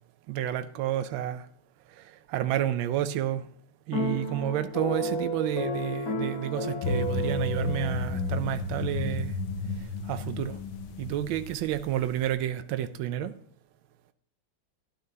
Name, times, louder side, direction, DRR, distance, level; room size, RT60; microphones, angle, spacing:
voice 1, 0.3-1.5 2.0-3.4 3.9-9.3 10.1-10.6 11.0-13.3, right 11 dB, 85° right, 1.4 m, -30 dB
sound 1, 3.9-8.4, equal, 50° left, 2.1 m, -32 dB
sound 2, 6.8-12.3, left 4 dB, 90° left, 1.5 m, -32 dB
11.5 x 11.5 x 2.8 m
omnidirectional pair, 2.1 m